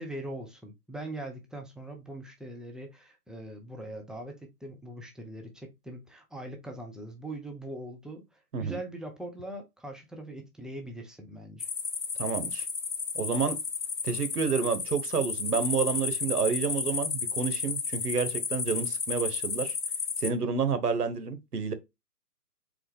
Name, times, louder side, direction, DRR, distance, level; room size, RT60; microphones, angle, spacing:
voice 1, 0.0-11.7, right 1 dB, ahead, 0.4 m, -41 dB
sound 1, 11.6-20.3, left 5 dB, 85° left, 1.3 m, -33 dB
voice 2, 12.2-12.7 13.1-13.6 14.0-19.8 20.2-21.7, right 5 dB, 65° right, 1.1 m, -29 dB
4.1 x 3.2 x 3.5 m
hypercardioid pair, 175°, 50 cm